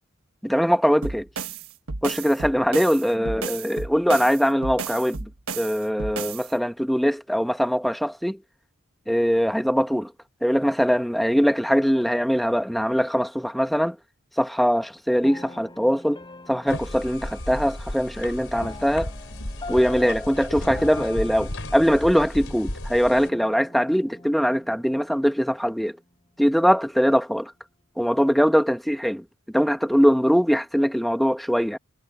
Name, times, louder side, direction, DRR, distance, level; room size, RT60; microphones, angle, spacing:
voice 1, 0.4-1.3 2.0-5.2 5.5-8.4 9.1-10.1 10.4-14.0 14.4-16.2 16.5-19.1 19.7-26.0 26.4-27.5 28.0-29.2 29.5-31.8, equal, ahead, 1.3 m, -22 dB
sound 1, 1.0-6.5, right 4 dB, 85° right, 1.3 m, -33 dB
sound 2, 15.2-26.3, left 2 dB, 25° left, 4.1 m, -45 dB
sound 3, 16.7-23.3, left 1 dB, 65° left, 4.8 m, -34 dB
head